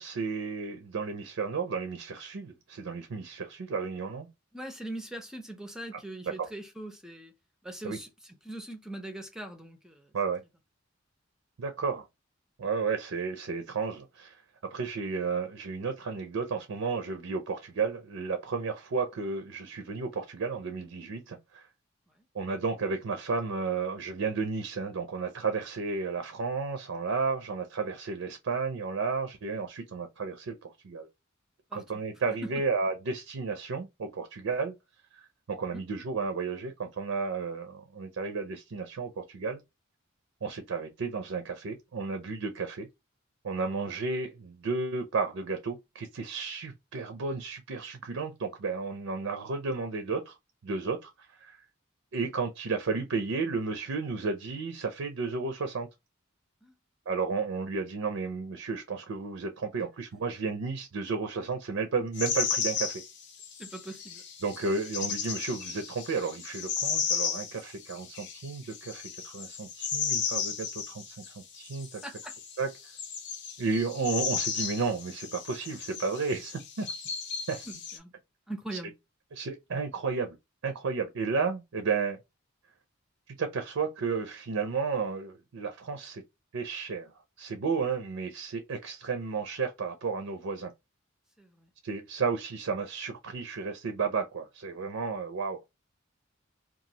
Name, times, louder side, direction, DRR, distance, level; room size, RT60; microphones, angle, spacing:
voice 1, 0.0-4.3 5.9-6.0 6.4-6.5 7.8-8.0 10.1-10.4 11.6-12.1 12.6-14.4 14.7-21.7 22.3-31.1 31.7-34.7 35.1-35.2 35.5-39.6 40.4-42.9 43.4-50.3 50.6-51.6 52.1-55.9 57.1-63.0 64.4-72.0 72.6-72.7 73.6-76.9 77.5-77.7 78.7-78.8 79.3-80.4 80.6-82.2 83.3-86.2 86.5-87.1 87.4-90.7 91.8-95.6, right 4 dB, 75° right, 0.5 m, -33 dB
voice 2, 4.5-7.3 7.6-10.1 31.7-32.0 32.4-32.5 35.7-35.8 56.6-56.7 63.6-64.2 72.0-72.3 77.7-78.1 78.5-78.9 91.4-91.7, right 1 dB, 5° right, 0.4 m, -41 dB
sound 1, 62.1-78.0, left 7 dB, 55° left, 0.6 m, -35 dB
2.9 x 2.4 x 2.7 m
head